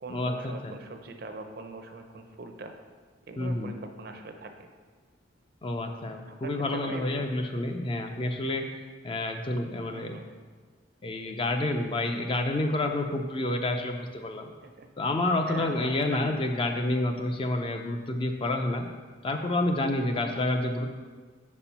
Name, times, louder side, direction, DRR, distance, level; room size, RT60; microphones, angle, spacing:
voice 1, 0.0-2.7 3.2-4.5 6.1-7.3 9.9-10.3 14.6-14.9 15.5-16.4 19.6-19.7, right 3 dB, 55° right, 5 dB, 0.5 m, -42 dB
voice 2, 3.4-3.7 5.6-8.7 9.0-10.1 11.0-14.5 15.0-18.9 19.2-20.9, left 2 dB, 30° left, 4 dB, 0.4 m, -29 dB
5.1 x 4.3 x 5.5 m, 1.5 s
head